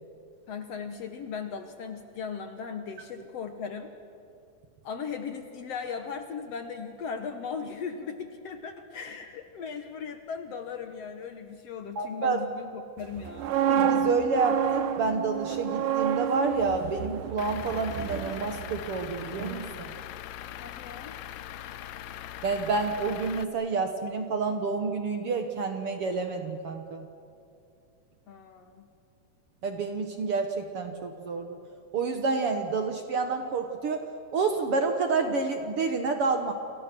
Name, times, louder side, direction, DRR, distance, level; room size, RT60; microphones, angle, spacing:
voice 1, 0.5-3.9 4.8-13.6 20.6-21.1 28.3-28.9, left 6 dB, 60° left, 7 dB, 1.9 m, -38 dB
voice 2, 12.0-12.4 13.7-19.9 22.4-27.1 29.6-31.6 31.9-34.1 34.3-36.5, right 4 dB, 55° right, 5 dB, 1.8 m, -29 dB
sound 1, 13.2-19.1 19.4-19.6, right 9 dB, 80° right, 2.5 m, -29 dB
Truck / Idling, 17.4-23.4, left 12 dB, 85° left, 2.4 m, -41 dB
29.5 x 28.0 x 6.1 m, 2.5 s
omnidirectional pair, 3.8 m